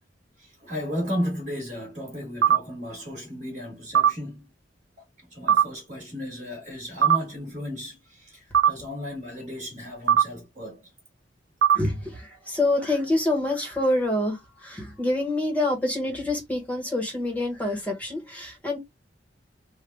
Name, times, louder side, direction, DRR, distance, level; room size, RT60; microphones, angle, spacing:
voice 1, 0.4-4.5 5.3-10.8, equal, 40° right, 1.3 m, -34 dB
sound 1, 2.4-2.6 3.9-4.1 5.5-5.7 7.0-7.2 8.5-8.7 10.1-10.3 11.6-11.8, right 8 dB, 65° right, 0.4 m, -18 dB
voice 2, 11.7-18.8, left 1 dB, 10° left, 1.0 m, -26 dB
3.2 x 2.1 x 3.2 m
head